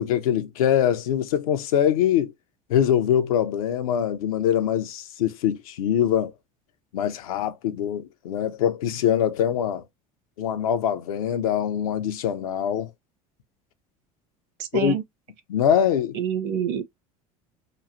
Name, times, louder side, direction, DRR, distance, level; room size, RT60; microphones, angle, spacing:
voice 1, 0.0-2.3 2.7-6.3 6.9-9.8 10.4-12.9 14.7-14.9 15.5-16.2, left 9 dB, 85° left, 0.6 m, -23 dB
voice 2, 14.6-15.0 16.1-16.8, right 8 dB, 60° right, 0.8 m, -27 dB
3.0 x 2.4 x 2.5 m
hypercardioid pair, 85°, 18 cm